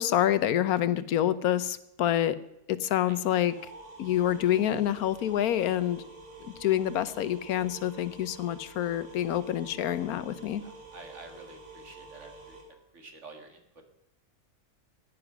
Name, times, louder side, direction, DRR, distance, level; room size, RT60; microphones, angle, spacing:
voice 1, 0.0-2.4 2.7-3.5 4.0-6.1 6.4-10.6, left 11 dB, 85° left, 15 dB, 1.2 m, -27 dB
sound 1, 3.2-12.6, right 3 dB, 25° right, 3.3 m, -49 dB
voice 2, 10.6-12.6 12.9-13.6, right 3 dB, 55° right, 5 dB, 2.2 m, -49 dB
15.5 x 9.8 x 6.0 m, 0.85 s
omnidirectional pair, 1.5 m